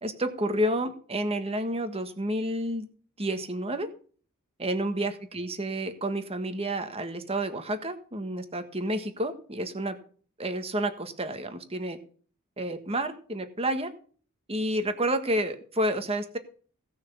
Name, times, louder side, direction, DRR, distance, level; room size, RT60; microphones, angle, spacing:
voice 1, 0.0-2.9 3.2-3.9 4.6-10.0 10.4-12.0 12.6-13.9 14.5-16.4, right 1 dB, 25° right, 8 dB, 1.6 m, -30 dB
17.0 x 6.4 x 6.9 m, 0.43 s
head